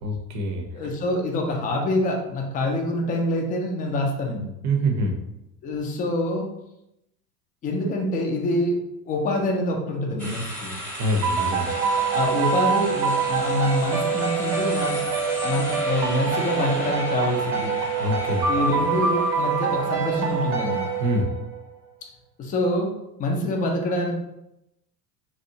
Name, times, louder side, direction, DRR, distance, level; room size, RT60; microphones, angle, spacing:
voice 1, 0.0-0.9 4.6-5.1 11.0-11.7 18.0-18.4 21.0-21.3, right 1 dB, 35° right, 3 dB, 0.6 m, -25 dB
voice 2, 0.7-4.4 5.6-6.5 7.6-8.8 9.1-10.8 12.1-15.0 15.4-17.7 18.5-20.8 22.4-22.9 23.2-24.1, left 1 dB, 20° left, 1 dB, 0.3 m, -25 dB
sound 1, 10.2-21.2, equal, 5° left, 0.8 m, -37 dB
sound 2, 11.2-21.6, right 5 dB, 70° right, 0.7 m, -25 dB
2.7 x 2.1 x 2.6 m, 0.86 s
hypercardioid pair, 85°, 48 cm